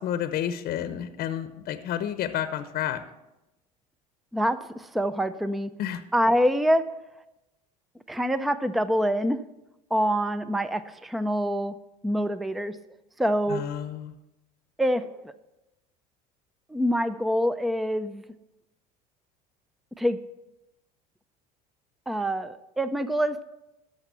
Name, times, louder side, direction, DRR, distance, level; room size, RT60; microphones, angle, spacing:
voice 1, 0.0-3.0 5.8-6.0 13.5-14.1, left 10 dB, 50° left, 11 dB, 0.8 m, -30 dB
voice 2, 4.3-5.7 6.1-6.8 8.1-9.4 9.9-11.7 12.0-12.8 13.2-13.6 14.8-15.3 16.7-18.2 20.0-20.2 22.1-23.4, equal, ahead, 12 dB, 0.5 m, -25 dB
13.0 x 5.7 x 6.9 m, 0.96 s
hypercardioid pair, 80°, 19 cm